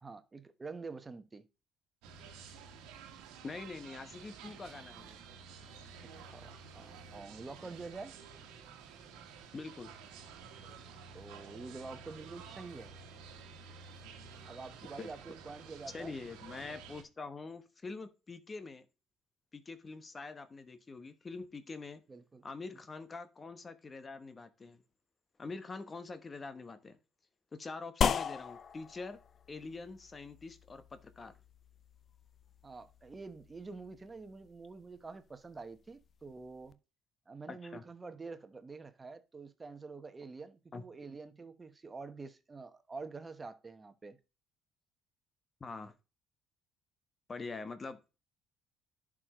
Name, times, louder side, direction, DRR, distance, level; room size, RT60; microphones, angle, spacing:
voice 1, 0.0-1.4 6.3-8.1 11.1-12.9 14.5-16.1 22.1-22.4 32.6-36.8 37.3-44.2, right 4 dB, 30° right, 1.1 m, -47 dB
sound 1, 2.0-17.0, right 5 dB, 75° right, 1.4 m, -51 dB
voice 2, 3.4-5.2 9.5-9.9 15.0-15.2 15.9-18.9 19.5-22.0 22.4-24.8 25.4-27.0 27.5-29.2 29.5-31.3 37.5-37.8 40.7-40.8 45.6-45.9 47.3-48.0, left 3 dB, 35° left, 1.1 m, -45 dB
sound 2, 28.0-36.7, left 7 dB, 50° left, 0.6 m, -39 dB
11.0 x 5.0 x 3.1 m
hypercardioid pair, 55°, 0 cm